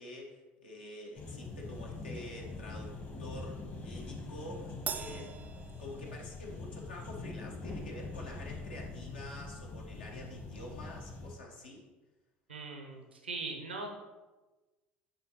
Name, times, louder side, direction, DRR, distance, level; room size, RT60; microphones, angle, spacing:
voice 1, 0.0-5.3 5.8-11.9, left 1 dB, 75° left, -1 dB, 1.1 m, -47 dB
sound 1, 1.2-11.3, left 3 dB, 35° left, 1.2 m, -43 dB
Crash cymbal, 4.9-6.5, right 7 dB, 30° right, 0.3 m, -41 dB
voice 2, 12.5-13.9, right 3 dB, 80° right, 3 dB, 0.7 m, -40 dB
9.2 x 3.7 x 2.9 m, 1.2 s
figure-of-eight pair, 65°, 6 cm